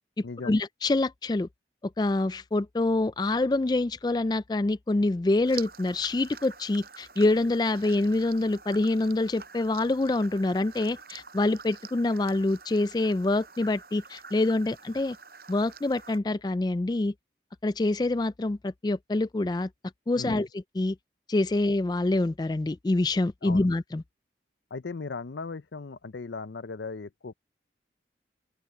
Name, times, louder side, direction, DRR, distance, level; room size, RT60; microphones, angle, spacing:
voice 1, 0.2-1.5 2.0-15.2 15.5-17.1 17.6-19.7 20.1-21.0 21.3-24.0, left 2 dB, 25° left, 0.3 m, -26 dB
sound 1, 5.4-16.2, right 6 dB, 55° right, 7.0 m, -47 dB
voice 2, 24.7-27.3, left 4 dB, 80° left, 0.6 m, -37 dB
open air
head